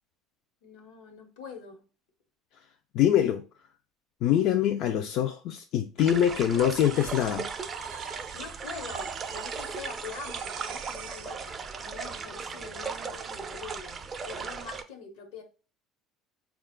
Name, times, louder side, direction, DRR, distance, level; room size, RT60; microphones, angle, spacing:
voice 1, 0.6-1.9 8.3-15.4, left 5 dB, 85° left, 1.1 m, -44 dB
voice 2, 2.9-3.4 4.2-7.5, left 10 dB, 60° left, 0.3 m, -24 dB
sound 1, 6.0-14.8, right 5 dB, 30° right, 0.4 m, -37 dB
sound 2, 6.7-11.4, right 10 dB, 90° right, 0.4 m, -45 dB
4.3 x 2.3 x 3.6 m
cardioid pair, 130°, 0 cm